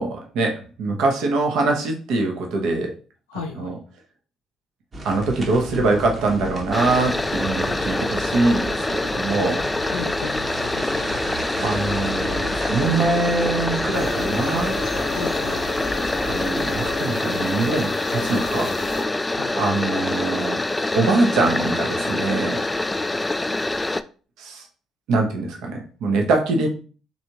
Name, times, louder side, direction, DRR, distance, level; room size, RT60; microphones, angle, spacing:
voice 1, 0.0-3.0 3.5-3.8 5.0-9.6 11.6-14.9 16.3-18.8 19.6-20.6 20.9-22.6 24.4-24.7 25.1-26.7, right 3 dB, 65° right, 2 dB, 0.8 m, -23 dB
voice 2, 3.3-3.7 9.9-11.1 15.1-15.7 19.3-19.5, left 6 dB, 80° left, 1 dB, 0.4 m, -34 dB
sound 1, 4.9-17.0, right 2 dB, 35° right, 1.0 m, -34 dB
sound 2, 6.7-24.0, left 2 dB, 15° left, 0.3 m, -25 dB
sound 3, 13.9-19.0, left 6 dB, 55° left, 0.8 m, -34 dB
4.1 x 3.4 x 2.9 m, 0.38 s
hypercardioid pair, 50°, 0 cm